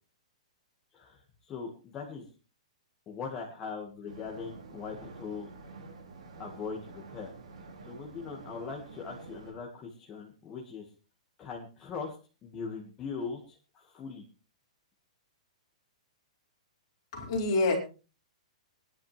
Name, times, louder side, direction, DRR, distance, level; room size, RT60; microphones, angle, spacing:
voice 1, 0.9-2.3 3.1-5.5 6.4-7.3 7.8-10.9 11.4-14.2, left 5 dB, 15° left, -1 dB, 1.8 m, -40 dB
sound 1, 4.1-9.5, right 3 dB, 60° right, 3.9 m, -48 dB
voice 2, 17.1-17.8, left 2 dB, 40° left, -1 dB, 4.9 m, -27 dB
22.5 x 10.5 x 3.3 m, 0.34 s
hypercardioid pair, 170°, 4 cm